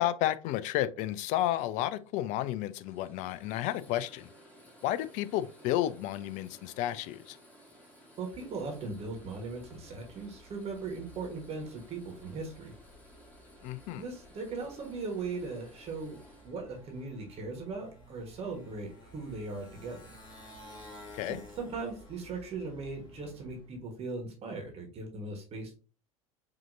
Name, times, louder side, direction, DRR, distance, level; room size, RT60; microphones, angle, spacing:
voice 1, 0.0-4.3 4.8-7.4 13.6-14.0 21.1-21.4, left 13 dB, 45° left, 0.4 m, -31 dB
sound 1, 1.6-17.1, equal, 10° left, 1.5 m, -57 dB
voice 2, 8.2-12.7 13.9-20.2 21.3-25.8, right 3 dB, 35° right, 1.3 m, -39 dB
Motorcycle, 8.5-23.8, left 1 dB, 25° left, 1.8 m, -54 dB
4.9 x 2.8 x 2.6 m
figure-of-eight pair, 80°, 18 cm